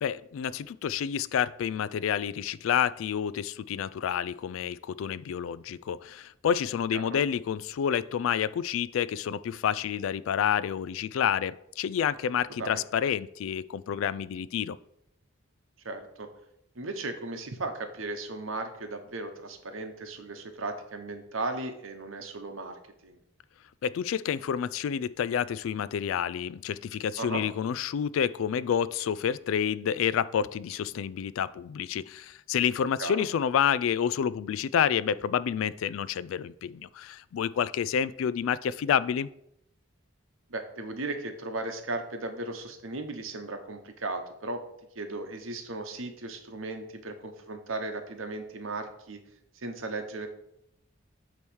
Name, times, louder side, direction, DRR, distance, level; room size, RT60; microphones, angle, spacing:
voice 1, 0.0-14.8 23.8-39.3, left 8 dB, 75° left, 0.3 m, -29 dB
voice 2, 15.8-16.3 16.7-23.2 27.2-27.4 33.0-33.2 40.5-44.6 44.9-49.2 49.5-50.3, right 2 dB, 80° right, 1.0 m, -36 dB
8.7 x 3.0 x 6.2 m
head